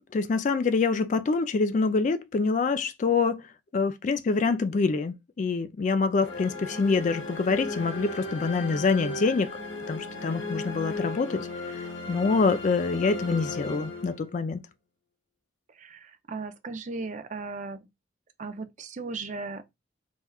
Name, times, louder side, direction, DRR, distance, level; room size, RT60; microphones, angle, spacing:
voice 1, 0.1-3.5 3.7-9.5 9.9-11.5 12.1-14.6, left 4 dB, 40° left, 0.3 m, -25 dB
sound 1, 6.2-14.6, left 2 dB, 75° left, 0.9 m, -36 dB
voice 2, 15.8-17.8 18.4-19.6, right 3 dB, 40° right, 0.4 m, -36 dB
4.3 x 2.2 x 2.3 m
head